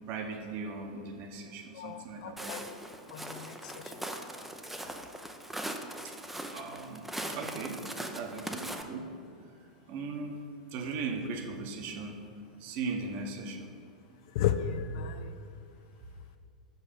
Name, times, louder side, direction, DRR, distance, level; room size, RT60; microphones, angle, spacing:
voice 1, 0.1-2.5 6.0-6.1 6.5-9.2 9.9-10.4 10.7-12.2 12.6-13.7, right 4 dB, 45° right, 4 dB, 0.9 m, -38 dB
voice 2, 1.7-2.7 3.1-3.9 14.3-15.4, left 8 dB, 55° left, 10 dB, 0.4 m, -34 dB
Walk footsteps, 2.4-8.8, right 1 dB, 5° right, 0.5 m, -40 dB
6.4 x 5.4 x 5.2 m, 2.5 s
figure-of-eight pair, 90°, 4 cm